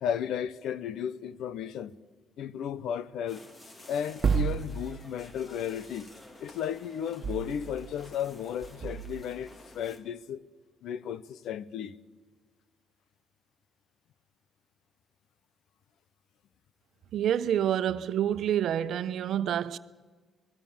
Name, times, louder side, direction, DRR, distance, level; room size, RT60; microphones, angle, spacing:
voice 1, 0.0-1.9 2.4-3.4 3.9-6.1 6.4-10.4 10.8-11.9, left 9 dB, 80° left, 1.0 m, -34 dB
sound 1, 3.3-10.0, left 1 dB, 35° left, 3.9 m, -53 dB
sound 2, 4.2-5.4 7.2-8.2 8.6-9.2, right 6 dB, 40° right, 1.6 m, -31 dB
voice 2, 17.1-19.8, right 10 dB, 70° right, 1.0 m, -28 dB
26.0 x 20.5 x 7.3 m
cardioid pair, 90°, 0 cm